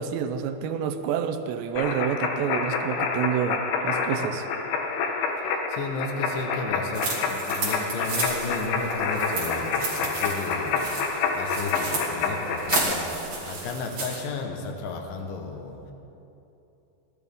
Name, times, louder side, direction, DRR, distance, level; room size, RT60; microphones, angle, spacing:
voice 1, 0.0-4.5, right 8 dB, 85° right, 8 dB, 2.8 m, -28 dB
sound 1, 1.8-12.8, left 5 dB, 85° left, 3.4 m, -28 dB
voice 2, 5.4-10.9 11.3-15.9, left 3 dB, 70° left, 2 dB, 2.3 m, -33 dB
sound 2, 6.9-14.2, right 3 dB, 40° right, 3.5 m, -32 dB
19.5 x 12.5 x 3.6 m, 2.9 s
omnidirectional pair, 5.2 m